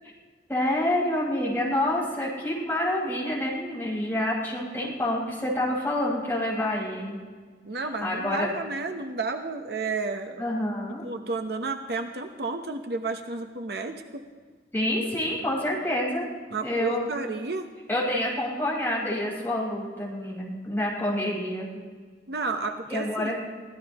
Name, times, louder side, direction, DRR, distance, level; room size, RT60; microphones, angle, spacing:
voice 1, 0.5-7.2 8.0-8.5 10.4-11.0 14.7-16.3 16.6-17.1 17.9-21.7 22.9-23.4, left 1 dB, 10° left, -5 dB, 5.0 m, -27 dB
voice 2, 7.7-10.4 11.0-14.2 16.5-17.7 22.3-23.3, right 3 dB, 60° right, 5 dB, 0.9 m, -32 dB
24.0 x 17.0 x 3.0 m, 1.5 s
head